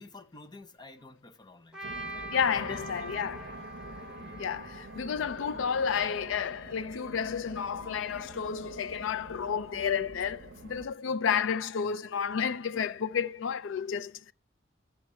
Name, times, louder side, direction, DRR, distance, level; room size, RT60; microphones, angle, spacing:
voice 1, 0.0-3.3 4.2-4.4 11.8-12.0, left 2 dB, 20° left, 0.7 m, -51 dB
Trumpet, 1.7-5.9, right 1 dB, 5° right, 2.6 m, -44 dB
sound 1, 1.8-10.9, right 2 dB, 55° right, 0.9 m, -47 dB
voice 2, 2.3-14.3, left 7 dB, 70° left, 0.4 m, -31 dB
Wind instrument woodwind instrument, 5.7-10.1, left 6 dB, 85° left, 1.2 m, -55 dB
12.0 x 7.3 x 3.1 m
head